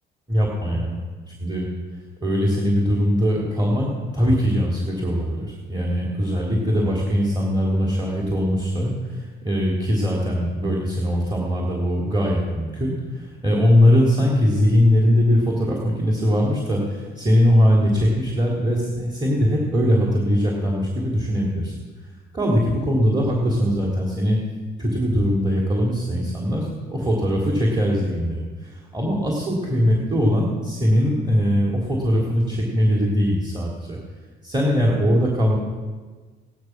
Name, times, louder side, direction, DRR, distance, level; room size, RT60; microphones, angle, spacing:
voice 1, 0.3-0.9 1.4-1.7 2.2-21.7 22.3-24.4 24.8-34.0 34.4-35.6, equal, 20° right, -3 dB, 3.3 m, -21 dB
16.0 x 11.0 x 6.0 m, 1.4 s
cardioid pair, 90°, 20 cm